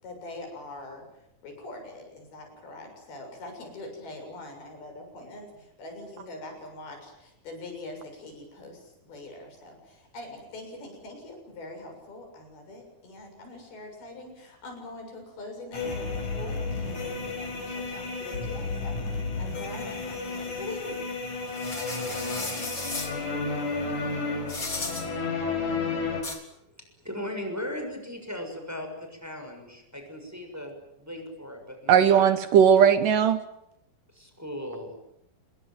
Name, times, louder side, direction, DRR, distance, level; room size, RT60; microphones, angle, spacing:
voice 1, 0.0-21.0, left 2 dB, 85° left, 3 dB, 9.0 m, -43 dB
sound 1, 15.7-26.2, left 3 dB, 55° left, 5.9 m, -32 dB
sound 2, 21.5-23.1 24.5-25.1 26.2-26.4, left 2 dB, 20° left, 4.1 m, -34 dB
voice 2, 27.0-32.0 34.1-35.0, left 1 dB, 5° right, 4 dB, 6.4 m, -37 dB
voice 3, 31.9-33.4, right 8 dB, 65° right, 12 dB, 2.6 m, -18 dB
27.5 x 21.5 x 9.2 m, 0.81 s
omnidirectional pair, 4.3 m